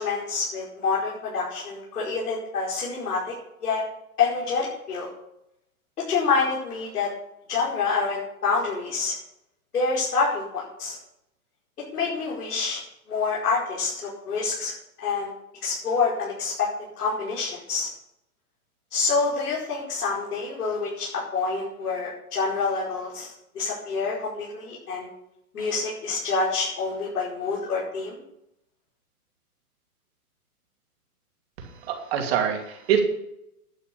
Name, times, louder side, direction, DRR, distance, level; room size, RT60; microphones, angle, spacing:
voice 1, 0.0-3.3 3.6-3.8 4.2-5.1 6.0-7.1 7.5-9.1 9.7-11.0 11.9-12.8 13.1-14.7 15.0-15.3 15.6-16.7 17.0-17.9 18.9-25.1 25.5-28.2, left 4 dB, 90° left, -5 dB, 5.1 m, -27 dB
voice 2, 31.8-33.0, right 8 dB, 40° right, 3 dB, 2.8 m, -24 dB
11.5 x 8.1 x 6.8 m, 0.79 s
hypercardioid pair, 165°, 45 cm